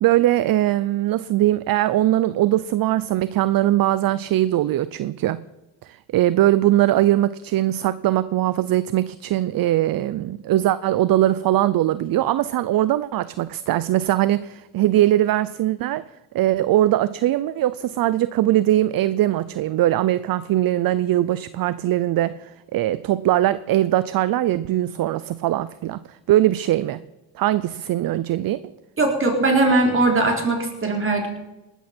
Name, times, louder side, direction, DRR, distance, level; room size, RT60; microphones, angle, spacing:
voice 1, 0.0-5.4 5.8-16.1 16.3-27.0 27.3-28.6, right 14 dB, 50° right, 0.6 m, -21 dB
voice 2, 29.0-31.3, right 2 dB, 25° right, 4.0 m, -20 dB
19.0 x 13.0 x 4.4 m
cardioid pair, 110°, 47 cm